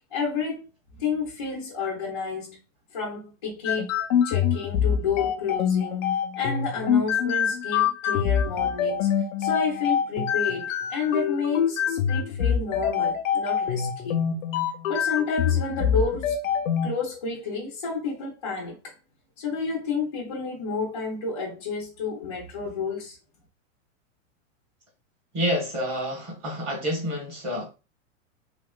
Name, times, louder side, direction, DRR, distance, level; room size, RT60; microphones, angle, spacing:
voice 1, 0.1-0.7 1.0-2.6 2.9-4.0 4.2-6.1 6.4-9.1 9.4-14.2 14.9-16.4 16.8-18.9 19.4-23.2, left 5 dB, 25° left, 0.4 m, -30 dB
sound 1, 3.7-16.9, left 8 dB, 85° left, 0.6 m, -25 dB
voice 2, 25.3-27.7, equal, 25° right, 1.2 m, -28 dB
3.4 x 3.0 x 2.2 m
supercardioid pair, 180°, 39 cm